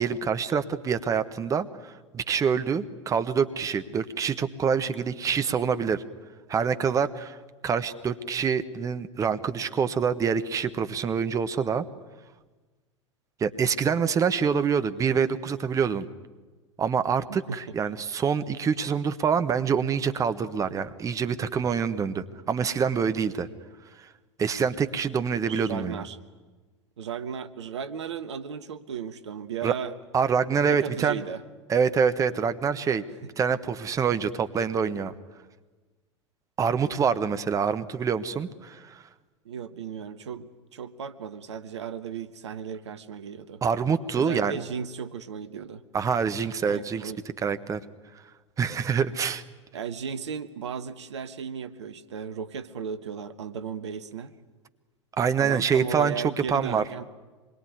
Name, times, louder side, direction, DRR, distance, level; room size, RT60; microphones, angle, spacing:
voice 1, 0.0-6.0 6.5-7.4 7.6-11.8 13.4-16.1 16.8-23.5 24.4-26.0 29.6-29.7 30.1-31.2 31.7-33.0 33.4-35.1 36.6-39.0 43.6-44.5 45.9-47.1 47.4-47.8 48.6-49.4 55.2-56.8, right 6 dB, 20° right, 10 dB, 1.2 m, -26 dB
voice 2, 17.3-17.7 25.5-26.2 27.0-29.9 30.7-31.4 39.4-43.6 44.1-45.8 46.6-47.2 49.7-54.3 55.4-57.2, right 7 dB, 65° right, 12 dB, 1.2 m, -35 dB
26.0 x 22.0 x 9.6 m, 1.3 s
figure-of-eight pair, 85°, 16 cm